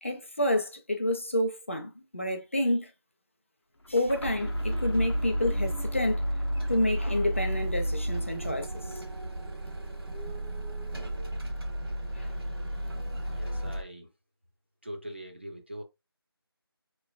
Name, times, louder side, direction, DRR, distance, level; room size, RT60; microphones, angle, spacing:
voice 1, 0.0-2.9 3.9-6.2 6.7-8.7 12.1-12.3, left 1 dB, 30° left, 0.5 m, -29 dB
sound 1, 3.8-9.6, equal, 90° left, 0.6 m, -40 dB
sound 2, 4.4-13.8, right 1 dB, 70° right, 1.0 m, -32 dB
voice 2, 13.3-14.1 14.8-15.8, equal, 25° right, 0.4 m, -42 dB
4.7 x 3.0 x 2.3 m
figure-of-eight pair, 165°, 13 cm